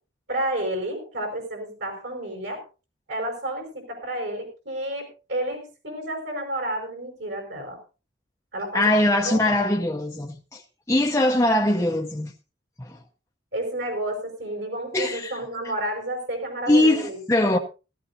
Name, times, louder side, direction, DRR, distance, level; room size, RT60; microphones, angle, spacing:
voice 1, 0.3-2.6 3.1-7.8 8.5-8.9 9.2-9.6 13.5-17.2 17.5-17.6, right 1 dB, 65° right, 5.4 m, -31 dB
voice 2, 8.7-10.6 10.9-12.3 12.8-13.0 14.9-15.4 16.7-17.6, left 1 dB, 15° left, 0.8 m, -21 dB
16.5 x 15.0 x 2.7 m
head